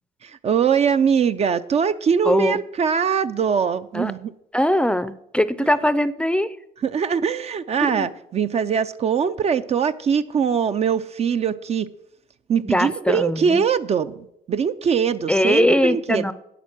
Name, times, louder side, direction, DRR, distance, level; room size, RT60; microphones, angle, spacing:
voice 1, 0.2-4.3 5.6-5.7 6.8-11.9 12.5-16.2, right 7 dB, 40° right, 0.5 m, -22 dB
voice 2, 2.3-2.6 3.9-4.1 4.5-6.6 7.8-8.1 12.7-13.6 15.3-16.3, left 1 dB, 5° left, 0.6 m, -21 dB
11.0 x 8.3 x 6.1 m
cardioid pair, 110°, 17 cm